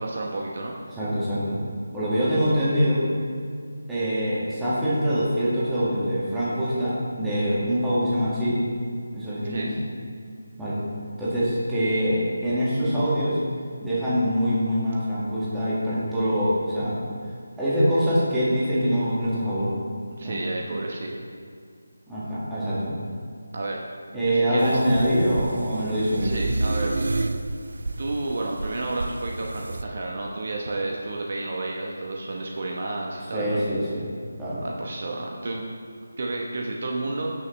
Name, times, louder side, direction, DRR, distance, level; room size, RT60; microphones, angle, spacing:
voice 1, 0.0-0.8 9.4-9.7 20.1-21.2 23.5-23.8 24.2-24.8 26.2-27.0 28.0-33.6 34.6-35.7 36.2-37.3, right 2 dB, 45° right, -1 dB, 0.9 m, -31 dB
voice 2, 1.0-1.6 1.9-3.0 3.9-8.6 9.1-9.7 10.6-10.8 11.2-13.4 13.8-17.0 17.6-19.7 20.2-20.4 22.1-22.9 24.1-26.3 33.3-34.1 34.4-34.6, equal, 5° right, -11 dB, 1.8 m, -24 dB
sound 1, 24.6-29.8, right 2 dB, 75° right, 0.5 m, -30 dB
15.5 x 6.3 x 3.2 m, 2.2 s
figure-of-eight pair, 170°, 0 cm